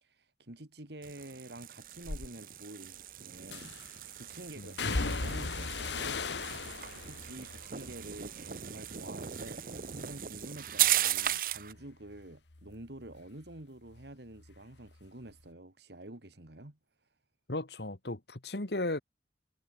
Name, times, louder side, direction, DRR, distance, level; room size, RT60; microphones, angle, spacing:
voice 1, 0.0-3.8 4.2-6.3 7.1-16.8, right 1 dB, 75° right, 2.4 m, -48 dB
sound 1, 1.0-11.7, right 12 dB, 50° right, 0.8 m, -36 dB
sound 2, 2.0-2.3 3.5-4.0 4.8-9.0 9.3-10.0 10.3-13.6 13.9-15.0 15.3-15.4, left 3 dB, 90° left, 1.5 m, -39 dB
voice 2, 17.5-19.0, left 2 dB, 70° left, 1.9 m, -35 dB
head